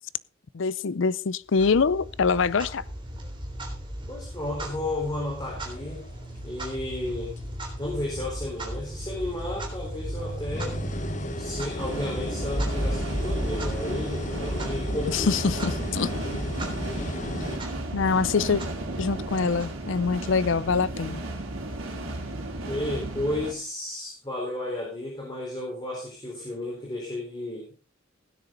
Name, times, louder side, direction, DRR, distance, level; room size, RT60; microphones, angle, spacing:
voice 1, 0.5-2.8 15.1-16.1 17.9-18.6 19.0-21.2, left 5 dB, 65° left, 0.5 m, -24 dB
Clock, 1.6-20.3, right 1 dB, 25° right, 3.5 m, -35 dB
voice 2, 4.1-6.1 6.4-7.3 7.8-10.8 11.4-15.3 22.6-27.7, left 1 dB, 20° left, 4.0 m, -33 dB
sound 1, 5.4-6.8 7.4-7.9 8.5-9.1 9.7-17.6, left 1 dB, 35° left, 1.1 m, -37 dB
sound 2, 11.8-23.5, right 2 dB, 90° right, 3.2 m, -35 dB
16.5 x 9.8 x 3.9 m
head